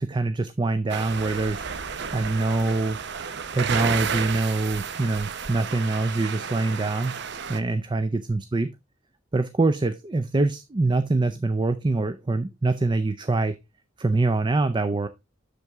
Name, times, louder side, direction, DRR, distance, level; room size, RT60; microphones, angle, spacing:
voice 1, 0.0-1.7 2.1-3.0 3.5-7.2 7.5-8.8 9.3-13.6 14.0-15.1, right 3 dB, 25° right, 0.4 m, -24 dB
sound 1, 0.9-7.6, right 6 dB, 60° right, 0.7 m, -32 dB
7.7 x 6.6 x 3.5 m
head